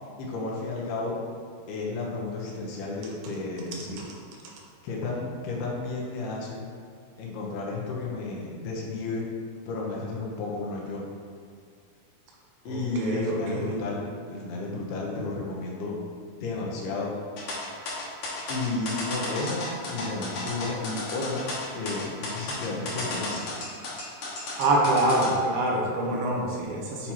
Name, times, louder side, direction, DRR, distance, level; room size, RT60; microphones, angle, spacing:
voice 1, 0.2-1.2 1.7-4.1 4.8-6.6 7.2-9.2 9.7-11.0 12.7-15.9 16.2-17.1 18.5-21.4 21.7-23.5 26.1-26.2 27.0-27.1, left 3 dB, 80° left, -3 dB, 2.8 m, -32 dB
voice 2, 12.7-13.7 24.6-27.1, right 1 dB, 80° right, -2 dB, 2.6 m, -25 dB
sound 1, 17.4-25.3, left 2 dB, 60° left, 2.0 m, -34 dB
8.6 x 3.0 x 4.2 m, 2.1 s
omnidirectional pair, 4.7 m